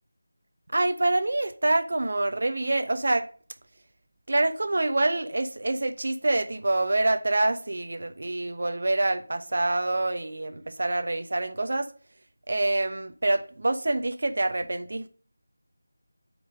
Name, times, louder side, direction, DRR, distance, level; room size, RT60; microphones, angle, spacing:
voice 1, 0.7-3.3 4.3-11.9 12.5-15.1, right 2 dB, 55° right, 1.0 m, -26 dB
7.9 x 4.8 x 6.4 m
figure-of-eight pair, 175°, 0 cm